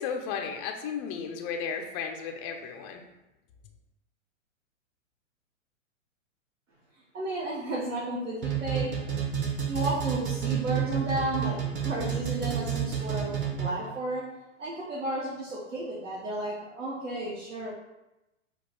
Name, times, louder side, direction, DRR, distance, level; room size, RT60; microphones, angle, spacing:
voice 1, 0.0-3.0, left 6 dB, 25° left, 3 dB, 0.4 m, -34 dB
voice 2, 7.1-8.9 9.7-14.2 14.6-17.7, right 1 dB, 75° right, -6 dB, 1.5 m, -33 dB
sound 1, 8.4-13.9, right 9 dB, 30° right, 0.9 m, -30 dB
5.1 x 2.3 x 4.5 m, 0.96 s
hypercardioid pair, 120°, 39 cm